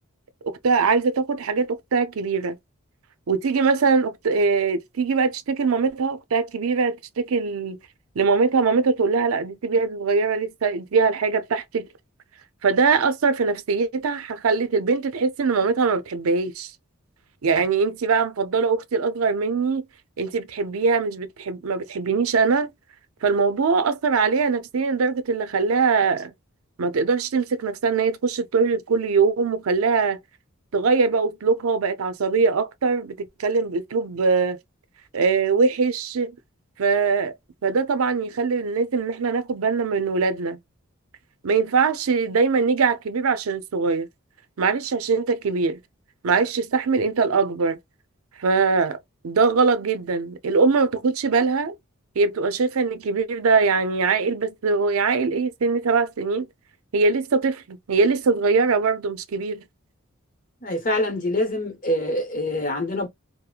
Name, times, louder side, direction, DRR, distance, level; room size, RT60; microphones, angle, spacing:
voice 1, 0.4-2.6 3.3-7.8 8.2-11.9 12.6-16.7 17.4-19.8 20.2-22.7 23.2-26.3 26.8-30.2 30.7-34.6 35.1-36.4 36.8-37.3 37.6-40.6 41.4-44.1 44.6-45.8 46.2-47.8 48.4-49.0 49.2-51.7 52.2-56.5 56.9-59.6, right 4 dB, 85° right, 0.5 m, -22 dB
voice 2, 60.6-63.1, left 1 dB, 40° left, 1.1 m, -25 dB
2.8 x 2.1 x 2.3 m
head